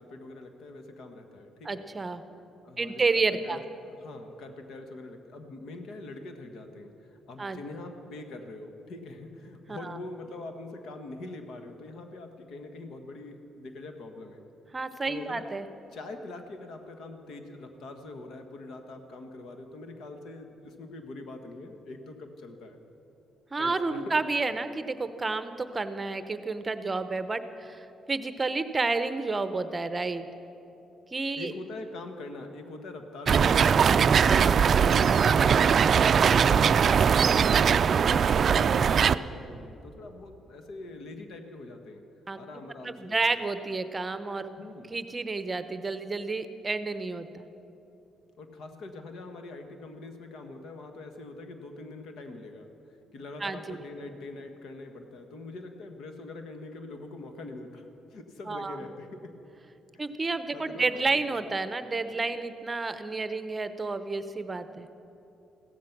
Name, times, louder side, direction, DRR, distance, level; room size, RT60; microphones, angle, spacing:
voice 1, 0.0-1.8 2.6-14.4 15.0-15.5 15.9-22.8 23.6-24.0 31.3-37.1 37.5-42.0 42.3-43.2 44.6-44.9 48.4-59.4 59.9-60.0 60.5-61.1 61.4-61.5, left 2 dB, 75° left, 6 dB, 1.5 m, -43 dB
voice 2, 1.6-2.2 2.8-3.6 7.4-7.6 9.7-10.0 14.7-15.7 23.5-30.2 31.1-31.5 34.2-34.7 42.3-42.4 42.8-44.5 44.9-47.5 53.4-53.8 58.5-58.8 60.0-64.9, right 3 dB, 25° right, 11 dB, 0.8 m, -30 dB
sound 1, 33.3-39.2, right 7 dB, 50° right, 0.3 m, -21 dB
16.0 x 14.0 x 6.0 m, 2.9 s
cardioid pair, 90°, 0 cm